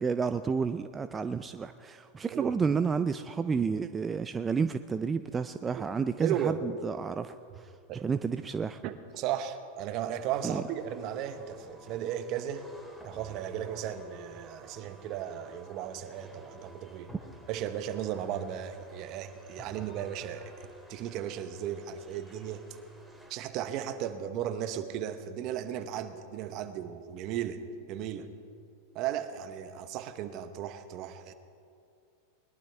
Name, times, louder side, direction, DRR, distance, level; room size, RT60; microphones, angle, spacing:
voice 1, 0.0-7.7 8.0-8.8 10.4-10.6, right 5 dB, 20° right, 10 dB, 0.4 m, -31 dB
voice 2, 6.2-6.6 7.9-8.0 8.8-12.7 13.0-17.1 17.5-20.5 20.9-22.6 23.3-27.6 27.9-28.3 28.9-31.3, right 10 dB, 50° right, 10 dB, 1.0 m, -35 dB
sound 1, 10.2-23.4, right 1 dB, 5° right, 2.8 m, -52 dB
21.0 x 12.0 x 3.5 m, 2.5 s
hypercardioid pair, 105°, 0 cm